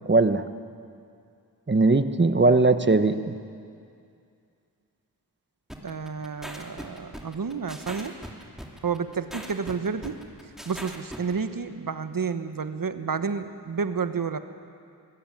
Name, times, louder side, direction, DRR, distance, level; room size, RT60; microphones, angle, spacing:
voice 1, 0.1-0.4 1.7-3.4, right 3 dB, 30° right, 10 dB, 1.2 m, -20 dB
sound 1, 5.7-11.3, equal, ahead, 2.9 m, -40 dB
voice 2, 5.8-8.2 8.8-14.4, right 5 dB, 60° right, 10 dB, 1.3 m, -30 dB
24.0 x 16.0 x 9.3 m, 2.4 s
cardioid pair, 55°, 38 cm